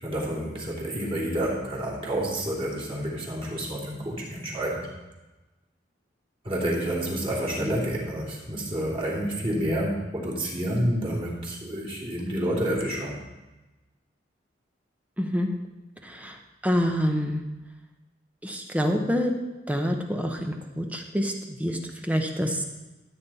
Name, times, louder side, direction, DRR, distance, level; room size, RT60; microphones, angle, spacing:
voice 1, 0.0-4.9 6.4-13.2, right 1 dB, 30° right, -5 dB, 3.1 m, -29 dB
voice 2, 15.2-15.5 16.0-16.3 16.6-17.4 18.4-19.3 19.7-21.3 21.6-21.8 22.1-22.6, equal, 10° right, 3 dB, 1.0 m, -26 dB
14.0 x 8.7 x 4.3 m, 1.1 s
head